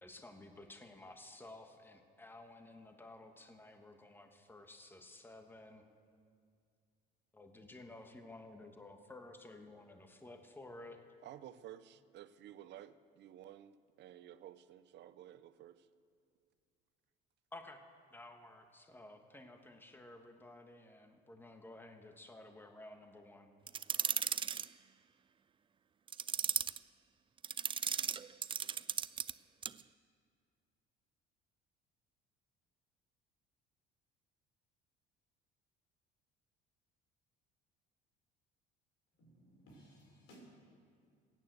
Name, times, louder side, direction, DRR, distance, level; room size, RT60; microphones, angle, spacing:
voice 1, 0.0-5.8 7.3-11.0 17.5-17.8 18.1-23.5, left 2 dB, 10° left, 6 dB, 1.4 m, -54 dB
voice 2, 11.2-15.9, right 11 dB, 55° right, 13 dB, 0.7 m, -53 dB
sound 1, 23.7-24.7 26.1-26.8 27.4-29.3 29.6-29.8, right 7 dB, 25° right, 0.3 m, -36 dB
voice 3, 39.2-40.5, right 1 dB, 70° left, -1 dB, 4.9 m, -59 dB
16.0 x 9.3 x 8.0 m, 2.3 s
supercardioid pair, 80°, 21 cm